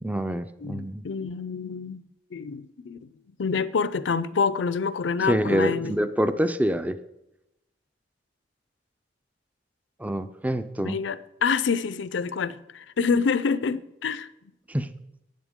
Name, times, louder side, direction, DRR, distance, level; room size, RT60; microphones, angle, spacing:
voice 1, 0.0-1.0 5.3-7.0 10.0-11.0 14.7-14.9, right 1 dB, 10° right, 0.4 m, -26 dB
voice 2, 0.6-2.0 2.3-3.1 3.4-6.0 10.8-14.3, left 5 dB, 85° left, 0.5 m, -27 dB
12.0 x 8.7 x 3.6 m
head